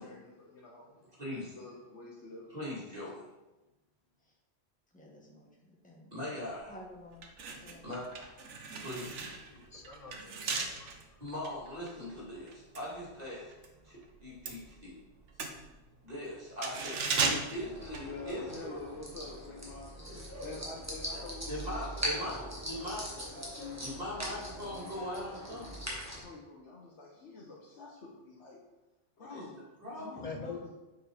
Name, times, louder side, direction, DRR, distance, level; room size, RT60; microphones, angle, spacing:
voice 1, 0.0-2.5 18.0-19.9 20.4-28.6 29.2-29.6 30.0-30.7, left 3 dB, 75° left, -3 dB, 1.4 m, -48 dB
voice 2, 2.5-3.2 6.1-6.7 7.8-8.4 8.8-9.3 11.2-13.5 13.8-15.0 16.0-18.8 21.5-23.0 23.8-25.7 29.3-29.4 29.8-30.2, left 1 dB, 35° right, -6 dB, 2.8 m, -40 dB
voice 3, 4.9-6.1 6.7-7.3 7.6-7.9, left 1 dB, 5° left, -3 dB, 1.4 m, -52 dB
sound 1, 6.5-6.7 7.1-13.7 14.0-18.7 19.0-19.1, right 4 dB, 85° right, 1.2 m, -37 dB
voice 4, 9.5-11.2 30.2-30.6, left 5 dB, 40° left, 3 dB, 0.7 m, -45 dB
sound 2, 17.5-26.2, equal, 15° right, 1.6 m, -41 dB
7.5 x 4.6 x 4.9 m, 1.0 s
omnidirectional pair, 1.2 m